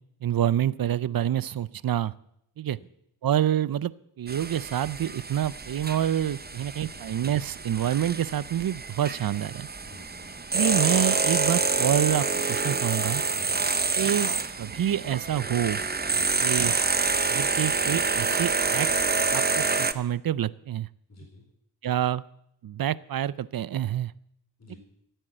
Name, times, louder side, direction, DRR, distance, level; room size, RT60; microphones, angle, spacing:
voice 1, 0.2-2.1 2.6-2.8 3.2-9.7 10.5-13.2 14.0-14.3 14.6-15.8 16.4-16.7 17.3-20.9 21.8-22.2 22.6-24.1, right 11 dB, 60° right, 20 dB, 0.6 m, -27 dB
sound 1, 4.3-19.9, right 4 dB, 25° right, 0.8 m, -27 dB
voice 2, 9.8-10.3 13.3-13.7 16.1-16.4 21.1-21.4 24.6-24.8, left 2 dB, 40° left, 0 dB, 4.3 m, -49 dB
14.5 x 9.2 x 7.7 m, 0.75 s
cardioid pair, 60°, 40 cm